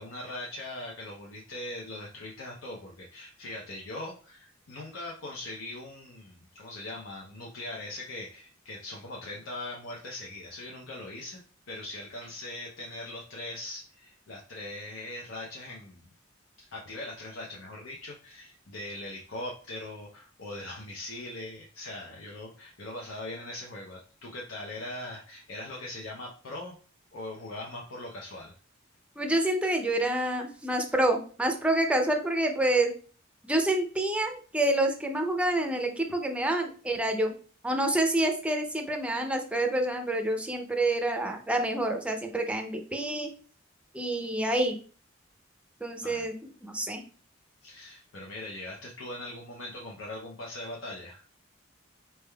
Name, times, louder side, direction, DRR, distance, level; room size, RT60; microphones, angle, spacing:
voice 1, 0.0-11.4 11.7-16.1 16.6-26.7 27.1-28.5 36.1-36.2 46.0-46.3 47.6-51.2, left 1 dB, 85° left, -2 dB, 0.6 m, -41 dB
voice 2, 29.2-32.9 33.4-37.3 37.6-43.3 43.9-44.8 45.8-46.3 46.6-47.0, right 1 dB, 5° right, 4 dB, 0.4 m, -27 dB
4.3 x 3.4 x 2.2 m, 0.41 s
head